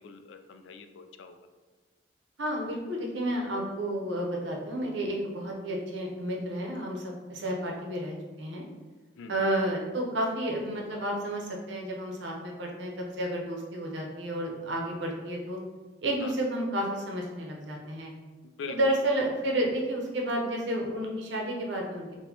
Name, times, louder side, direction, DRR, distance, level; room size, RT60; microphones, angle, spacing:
voice 1, 0.0-1.4 9.2-9.5 16.2-16.3 18.4-19.0, left 5 dB, 90° left, 7 dB, 0.3 m, -43 dB
voice 2, 2.4-8.6 9.3-15.6 16.0-18.1 18.7-22.1, right 1 dB, 85° right, 0 dB, 0.7 m, -31 dB
4.1 x 2.2 x 2.8 m, 1.3 s
head